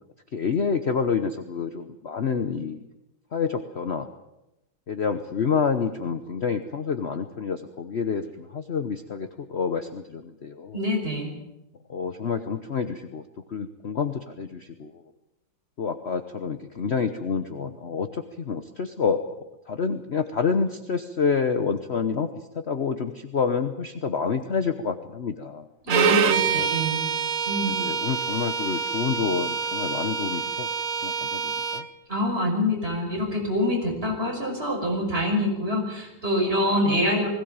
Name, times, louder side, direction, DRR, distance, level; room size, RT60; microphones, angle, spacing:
voice 1, 0.3-2.8 3.3-4.1 4.9-10.8 11.9-13.2 13.5-14.9 15.8-19.2 19.7-22.3 22.7-25.7 26.6-26.7 27.7-30.7 31.0-31.8, left 5 dB, 45° left, 9 dB, 1.1 m, -28 dB
voice 2, 10.7-11.3 25.8-27.0 27.5-27.7 32.1-37.3, left 1 dB, 30° right, 0 dB, 5.8 m, -25 dB
Bowed string instrument, 25.9-31.9, right 6 dB, 55° right, 1.2 m, -26 dB
20.5 x 17.0 x 8.7 m, 0.93 s
omnidirectional pair, 2.0 m